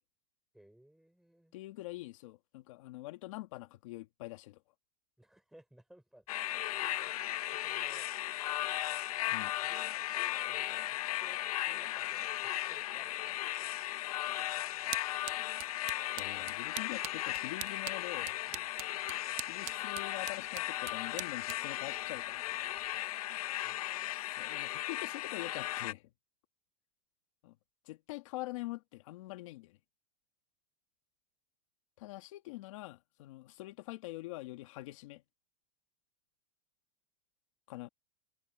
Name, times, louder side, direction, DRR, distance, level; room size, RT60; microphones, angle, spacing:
voice 1, 0.5-1.5 5.2-7.2 7.5-8.1 9.6-13.4 16.4-16.5 18.5-18.7 22.9-23.0 23.6-24.1, right 1 dB, ahead, 5.0 m, -60 dB
voice 2, 1.5-4.6 9.3-9.5 16.2-18.4 19.4-22.6 24.1-26.1 27.4-27.6 27.8-29.8 32.0-35.2 37.7-37.9, left 19 dB, 65° left, 1.9 m, -45 dB
sound 1, 6.3-25.9, left 15 dB, 90° left, 0.5 m, -36 dB
sound 2, 14.2-23.0, right 20 dB, 40° right, 0.7 m, -47 dB
supercardioid pair, 155°, 18 cm